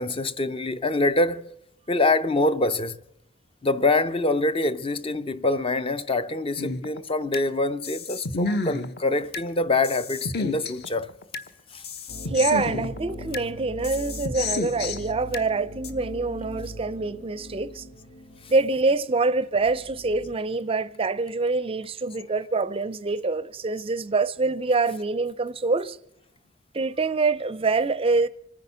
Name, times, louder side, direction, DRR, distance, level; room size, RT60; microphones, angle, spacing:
voice 1, 0.0-1.5 1.9-3.0 3.6-11.1 11.7-11.8 18.4-18.5, left 2 dB, 25° left, 0.5 m, -25 dB
sound 1, 6.6-7.5 7.8-9.5 9.8-11.5 11.8-13.5 13.8-15.5 15.8-15.9, left 3 dB, 50° left, 1.0 m, -31 dB
sound 2, 12.1-20.3, equal, 75° left, 2.8 m, -41 dB
voice 2, 12.3-17.9 18.5-26.0 26.7-28.3, right 3 dB, 30° right, 0.5 m, -25 dB
26.0 x 9.2 x 5.6 m
head